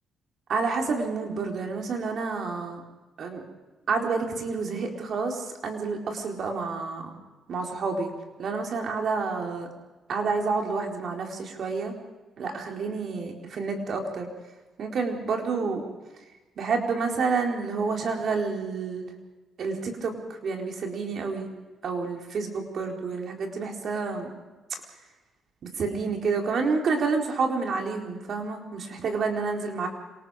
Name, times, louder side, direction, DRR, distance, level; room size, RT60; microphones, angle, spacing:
voice 1, 0.5-2.8 3.2-3.4 3.9-7.1 7.5-8.1 8.4-9.7 10.1-11.9 12.4-14.3 14.8-15.8 16.6-19.1 19.6-21.5 21.8-24.4 25.6-29.9, right 4 dB, 60° right, 2 dB, 4.1 m, -29 dB
27.0 x 19.0 x 5.0 m, 1.2 s
cardioid pair, 90°, 0 cm